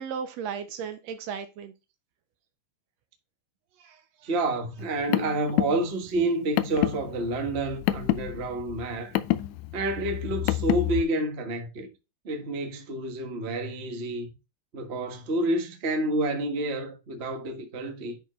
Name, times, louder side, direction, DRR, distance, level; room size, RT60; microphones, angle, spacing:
voice 1, 0.0-1.7 3.8-4.3, right 7 dB, 70° right, 1.8 m, -36 dB
voice 2, 4.2-9.1 9.7-11.9 12.2-14.3 14.7-18.2, right 2 dB, 50° right, 0.7 m, -29 dB
Car, 4.8-11.0, left 15 dB, 80° left, 1.9 m, -28 dB
10.0 x 4.5 x 3.1 m
omnidirectional pair, 3.5 m